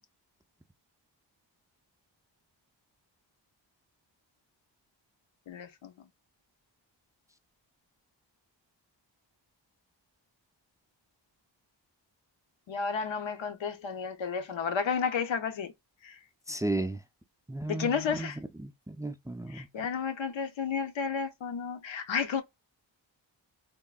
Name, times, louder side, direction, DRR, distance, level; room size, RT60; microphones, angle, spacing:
voice 1, 5.5-5.9 12.7-15.7 16.0-16.2 17.7-18.4 19.5-22.4, left 6 dB, 90° left, 0.7 m, -32 dB
voice 2, 16.5-17.0 17.5-18.3 18.6-19.7, right 2 dB, 10° right, 0.3 m, -34 dB
3.6 x 2.1 x 2.3 m
wide cardioid pair, 75°, 44 cm